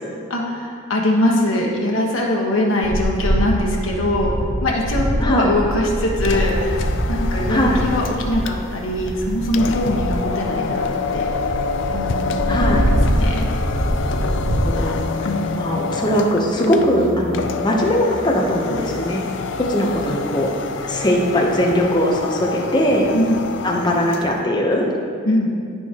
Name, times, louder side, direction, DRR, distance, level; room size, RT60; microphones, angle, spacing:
voice 1, 0.3-4.3 4.6-11.3 11.9-13.4 15.2-15.6 23.1-23.4 25.2-25.5, left 1 dB, 75° left, -1 dB, 1.3 m, -22 dB
sound 1, 2.8-14.9, equal, 65° right, 0.8 m, -23 dB
voice 2, 5.2-5.5 7.5-7.9 12.5-12.9 14.8-15.3 15.5-19.2 19.6-20.5 20.8-23.1 23.6-24.9, equal, 20° left, -1 dB, 0.8 m, -20 dB
sound 2, 6.1-24.4, left 4 dB, 60° left, 0.4 m, -27 dB
14.0 x 4.7 x 3.0 m, 2.4 s
head